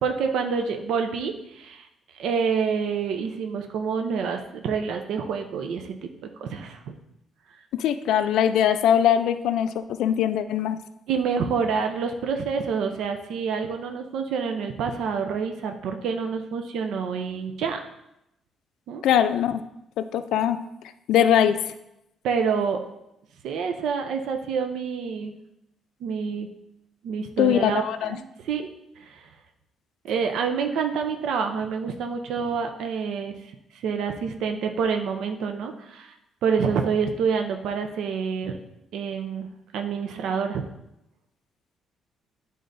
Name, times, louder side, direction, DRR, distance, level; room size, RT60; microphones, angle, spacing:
voice 1, 0.0-1.9 2.1-6.0 6.4-6.9 11.1-17.8 18.9-19.0 22.2-22.8 23.4-25.3 26.0-26.5 27.0-28.7 29.0-29.3 30.0-33.3 33.7-36.1 36.4-38.6 38.9-39.5 39.7-40.6, right 6 dB, 75° right, 5 dB, 0.5 m, -27 dB
voice 2, 7.7-10.8 19.0-19.6 20.0-20.6 21.1-21.6 27.4-28.1, left 10 dB, 80° left, 10 dB, 0.4 m, -21 dB
11.0 x 3.8 x 2.6 m, 0.85 s
cardioid pair, 135°, 0 cm